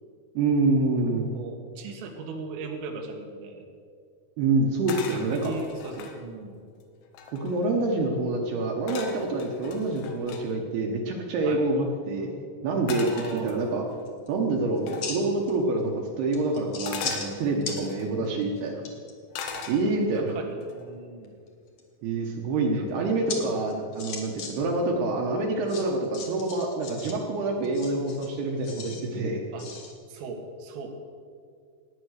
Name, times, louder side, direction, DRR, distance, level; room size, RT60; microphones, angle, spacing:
voice 1, 0.3-1.3 4.4-5.5 7.3-12.3 12.6-13.8 14.3-18.8 19.7-20.3 22.0-29.4, right 2 dB, 70° right, 1 dB, 2.7 m, -26 dB
voice 2, 0.9-3.6 5.1-6.6 11.4-11.6 13.0-13.6 19.5-19.6 20.1-21.3 22.7-23.2 29.5-29.7 30.1-30.9, right 4 dB, 90° right, 3 dB, 4.3 m, -38 dB
sound 1, 4.9-6.2 6.8-6.9 7.1-7.7 8.9-10.4 12.9-14.0 14.9-15.1 16.9-18.1 19.3-20.2 20.6-21.0, left 6 dB, 85° left, 3.8 m, -39 dB
sound 2, 14.1-14.3 14.8-15.5 15.8-15.9 16.3-17.3 17.6-17.8 18.2-19.1 21.2-21.8 23.3-23.4 23.7-24.5 24.8-24.9 25.7-27.1 27.6-29.0 29.6-29.9, left 5 dB, 65° left, 1.6 m, -37 dB
17.5 x 9.5 x 6.5 m, 2.2 s
omnidirectional pair, 5.7 m